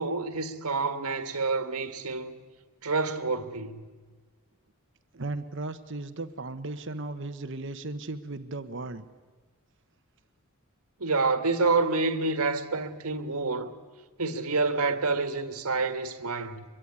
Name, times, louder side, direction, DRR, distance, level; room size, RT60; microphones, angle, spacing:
voice 1, 0.0-2.3 2.8-3.8 11.0-13.7 14.2-16.7, right 3 dB, 85° right, 1.8 m, -28 dB
voice 2, 5.1-9.0, right 2 dB, 55° right, 1.1 m, -36 dB
23.5 x 23.0 x 9.7 m
head